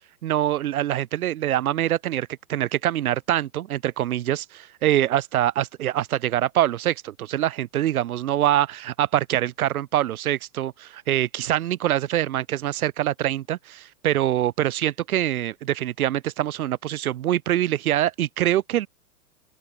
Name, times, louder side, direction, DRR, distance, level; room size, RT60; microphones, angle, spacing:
voice 1, 0.2-18.9, right 12 dB, 65° right, 3.6 m, -24 dB
open air
hypercardioid pair, 145°, 47 cm